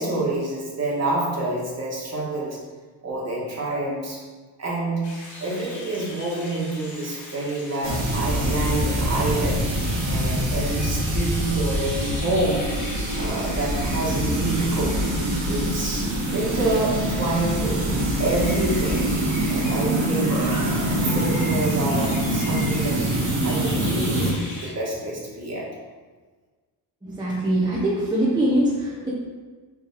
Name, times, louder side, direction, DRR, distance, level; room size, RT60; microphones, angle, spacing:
voice 1, 0.0-2.6 3.0-4.2 4.6-9.7 10.1-12.7 13.2-15.0 15.4-19.1 19.5-23.0 23.4-25.7, right 2 dB, 30° right, -4 dB, 1.8 m, -27 dB
sound 1, 5.0-24.7, left 2 dB, 35° left, 1.7 m, -40 dB
sound 2, 7.8-24.3, right 1 dB, 65° right, 1.6 m, -24 dB
voice 2, 27.0-29.1, right 1 dB, 10° right, -7 dB, 1.1 m, -22 dB
6.0 x 3.4 x 4.7 m, 1.4 s
cardioid pair, 110°, 48 cm